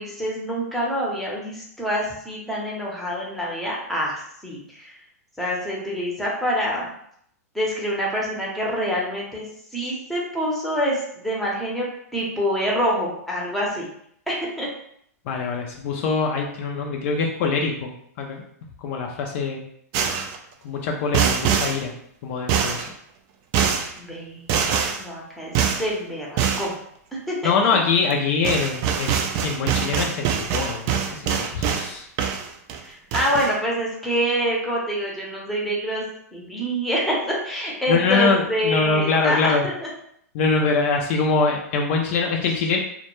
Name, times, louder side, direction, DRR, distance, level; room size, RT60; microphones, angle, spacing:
voice 1, 0.0-4.9 5.4-6.9 7.5-9.5 9.7-11.9 12.1-13.8 14.3-14.7 24.0-24.4 24.9-25.5 25.8-26.7 27.3-27.5 32.8-36.0 36.3-39.9, equal, ahead, -4 dB, 0.7 m, -26 dB
voice 2, 15.3-18.4 18.8-19.6 20.6-21.9 22.2-22.8 27.4-32.1 37.9-39.7 40.3-42.8, left 4 dB, 50° left, 1 dB, 0.4 m, -23 dB
sound 1, 19.9-20.4 21.1-21.8 22.5-22.9 23.5-23.9 24.5-25.0 25.5-25.9 26.4-26.7 28.1-28.2 28.4-31.9 32.2-32.8 33.1-33.5, right 7 dB, 40° right, 0.3 m, -23 dB
2.1 x 2.1 x 3.0 m, 0.68 s
hypercardioid pair, 130°, 9 cm